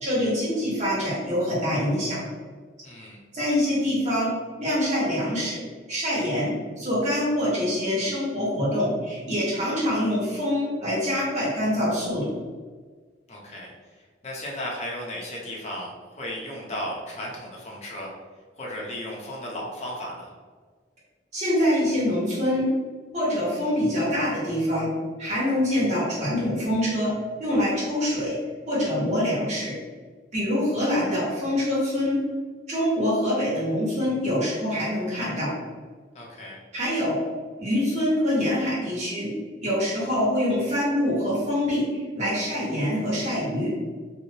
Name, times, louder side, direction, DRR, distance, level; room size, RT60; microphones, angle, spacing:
voice 1, 0.0-2.2 3.3-4.3 4.6-5.6 5.9-12.3 21.3-22.6 23.1-24.9 25.2-27.1 27.4-28.4 28.7-29.8 30.3-32.2 32.7-35.6 36.7-37.2 37.6-39.3 39.6-41.9 42.1-43.7, left 1 dB, 40° right, -8 dB, 1.1 m, -25 dB
voice 2, 2.8-3.2 13.3-13.7 14.2-18.1 18.6-20.3 36.1-36.6, left 1 dB, 40° left, -3 dB, 0.6 m, -35 dB
2.9 x 2.1 x 2.7 m, 1.5 s
head